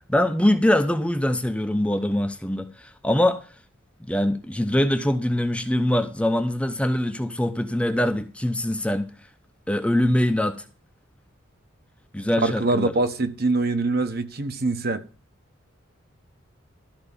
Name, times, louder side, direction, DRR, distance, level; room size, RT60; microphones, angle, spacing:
voice 1, 0.1-3.4 4.1-9.1 9.7-10.6 12.1-12.9, left 1 dB, 5° left, 0.7 m, -23 dB
voice 2, 12.4-15.0, right 2 dB, 50° right, 1.1 m, -24 dB
13.0 x 4.6 x 7.0 m
head